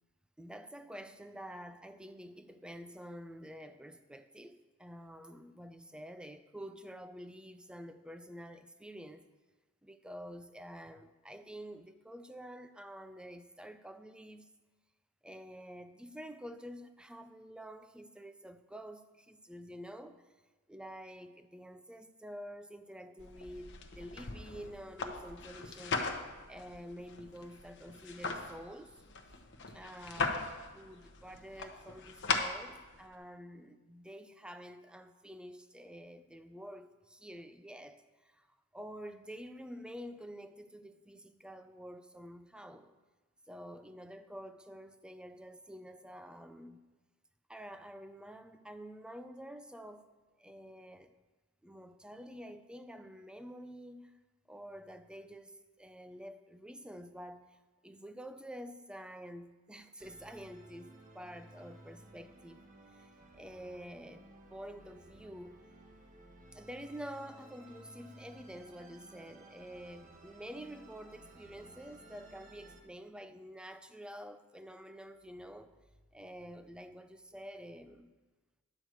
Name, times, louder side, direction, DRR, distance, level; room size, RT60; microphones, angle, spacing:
voice 1, 0.4-9.2 9.8-14.5 15.2-20.2 20.7-26.1 26.5-28.9 29.7-38.5 38.7-42.9 43.5-46.8 47.5-50.0 50.4-51.1 51.6-54.2 54.5-62.6 62.9-65.6 66.5-75.7 76.1-78.1, equal, 5° right, 0.4 m, -48 dB
sound 1, 23.2-33.1, left 4 dB, 60° left, 0.9 m, -39 dB
Musical instrument, 60.0-72.8, right 2 dB, 40° right, 1.1 m, -57 dB
10.5 x 4.8 x 7.9 m
head